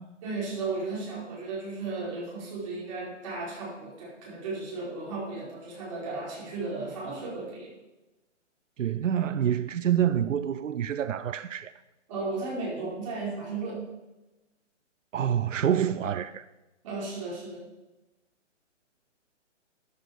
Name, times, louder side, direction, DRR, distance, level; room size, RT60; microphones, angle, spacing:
voice 1, 0.2-7.7 12.1-13.8 16.8-17.7, right 3 dB, 25° right, 5.3 m, -35 dB
voice 2, 8.8-11.7 15.1-16.4, right 9 dB, 85° right, 0.7 m, -27 dB
13.5 x 9.6 x 5.2 m
hypercardioid pair, 170°, 37 cm